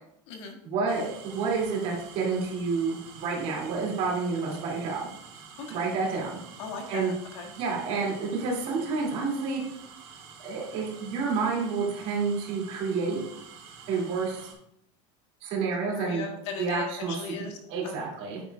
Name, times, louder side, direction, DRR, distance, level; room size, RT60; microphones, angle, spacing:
voice 1, 0.6-5.0 5.7-6.4 6.9-7.1 7.6-9.6 10.4-13.2 13.9-14.5 15.4-16.2 16.6-18.4, right 4 dB, 45° right, -2 dB, 2.5 m, -29 dB
sound 1, 0.9-14.5, right 6 dB, 65° right, 2.9 m, -48 dB
voice 2, 6.6-7.5 15.9-17.6 17.8-17.9, left 5 dB, 80° left, 2 dB, 1.9 m, -38 dB
9.0 x 8.9 x 2.3 m, 0.78 s
cardioid pair, 170°, 15 cm